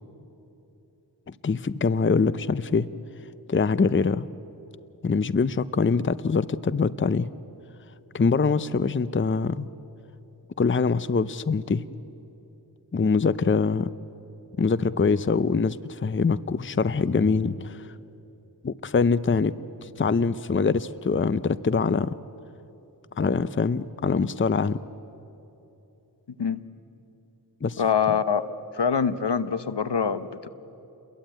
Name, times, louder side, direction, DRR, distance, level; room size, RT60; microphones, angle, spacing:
voice 1, 1.3-2.9 3.5-4.3 5.0-7.3 8.1-9.7 10.6-11.8 12.9-13.9 14.6-17.9 18.6-19.5 19.8-22.2 23.2-24.8 27.6-27.8, left 4 dB, 30° left, 16 dB, 0.6 m, -24 dB
voice 2, 27.8-28.5 28.7-30.5, left 6 dB, 75° left, 13 dB, 1.0 m, -24 dB
29.5 x 22.0 x 9.0 m, 3.0 s
wide cardioid pair, 60°, 42 cm